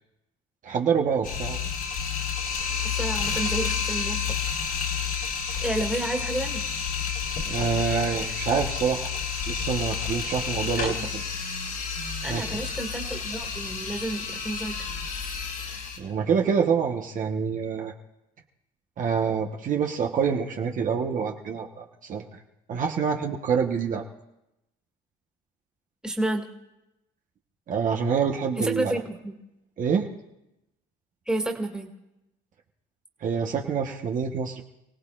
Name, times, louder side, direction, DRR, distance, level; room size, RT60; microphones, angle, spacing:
voice 1, 0.6-1.7 7.5-9.1 9.5-11.2 12.3-12.5 15.7-17.9 19.0-22.4 22.7-24.1 27.7-29.0 29.8-30.1 33.2-34.6, right 6 dB, 50° right, 1 dB, 1.2 m, -26 dB
sound 1, 1.2-16.0, left 6 dB, 70° left, 4.4 m, -30 dB
voice 2, 2.8-4.2 5.6-6.6 10.8-11.1 12.2-14.7 26.0-26.5 28.6-29.4 31.3-31.9, right 2 dB, 5° right, 1 dB, 2.1 m, -30 dB
28.5 x 17.5 x 2.5 m, 0.89 s
cardioid pair, 110°, 17 cm